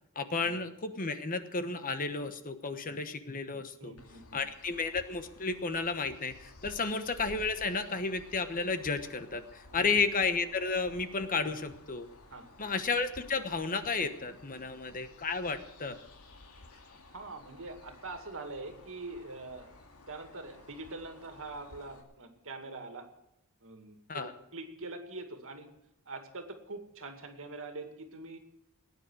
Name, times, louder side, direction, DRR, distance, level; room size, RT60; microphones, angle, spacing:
voice 1, 0.1-3.9 4.3-12.1 12.6-16.0 24.1-24.3, left 4 dB, 40° left, 9 dB, 1.1 m, -32 dB
voice 2, 3.8-4.4 6.8-6.9 9.7-9.9 12.3-12.7 17.1-19.8 20.1-23.1 23.6-25.7 26.1-28.4, right 2 dB, 65° right, 5 dB, 2.3 m, -44 dB
sound 1, 4.0-22.0, left 2 dB, 85° left, 2.4 m, -54 dB
19.0 x 9.4 x 6.3 m, 0.86 s
head